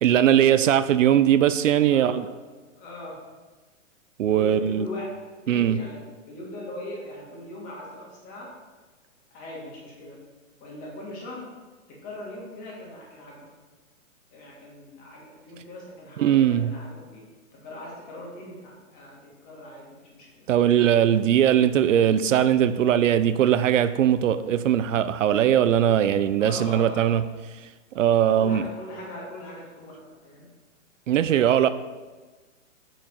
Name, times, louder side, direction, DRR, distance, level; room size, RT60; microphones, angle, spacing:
voice 1, 0.0-2.3 4.2-4.9 5.5-5.8 16.2-16.7 20.5-27.2 27.9-28.7 31.1-31.7, right 10 dB, 75° right, 13 dB, 0.5 m, -20 dB
voice 2, 2.7-3.2 4.3-6.0 6.3-8.5 9.3-10.2 10.6-11.5 11.9-13.5 14.3-17.2 17.5-20.5 26.4-27.2 28.2-30.5, left 1 dB, 20° left, -3 dB, 1.9 m, -40 dB
6.9 x 6.0 x 4.3 m, 1.3 s
hypercardioid pair, 160°, 39 cm